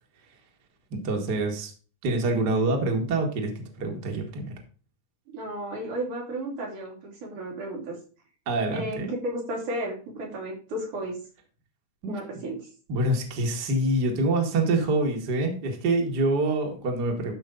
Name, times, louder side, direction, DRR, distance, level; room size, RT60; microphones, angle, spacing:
voice 1, 0.9-1.7 2.0-4.5 8.5-9.1 12.0-12.2 12.9-17.3, right 2 dB, 35° right, 2 dB, 2.2 m, -26 dB
voice 2, 5.3-8.0 8.7-11.2 12.1-12.6, right 1 dB, 80° right, -3 dB, 5.3 m, -33 dB
12.5 x 5.8 x 3.9 m, 0.38 s
omnidirectional pair, 3.5 m